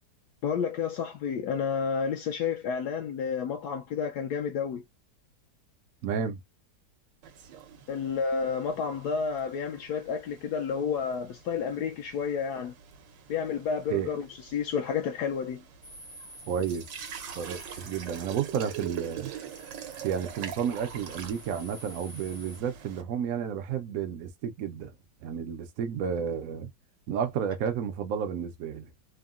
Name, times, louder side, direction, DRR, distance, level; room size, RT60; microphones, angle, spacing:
voice 1, 0.4-4.8 7.9-12.7 13.3-15.6, left 6 dB, 70° left, 1.0 m, -30 dB
voice 2, 6.0-6.4 13.9-14.1 16.5-16.9 17.4-19.3 20.0-24.9 25.2-26.7 27.1-28.9, right 8 dB, 70° right, 0.8 m, -31 dB
sound 1, 7.2-23.0, right 8 dB, 85° right, 1.3 m, -45 dB
sound 2, 15.8-22.6, equal, 5° right, 0.5 m, -50 dB
3.6 x 2.1 x 2.4 m
omnidirectional pair, 1.9 m